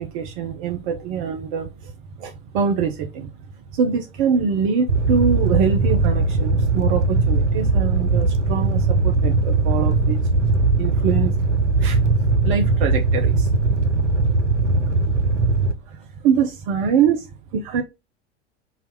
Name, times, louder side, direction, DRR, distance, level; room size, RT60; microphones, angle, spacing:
voice 1, 0.0-1.9 2.2-3.3 3.7-10.2 10.8-11.4 11.8-12.0 12.4-13.5 15.8-17.8, right 6 dB, 45° right, 0.7 m, -24 dB
Fire, 4.9-15.7, right 3 dB, 85° right, 0.7 m, -19 dB
4.0 x 2.7 x 4.4 m
figure-of-eight pair, 80°, 35 cm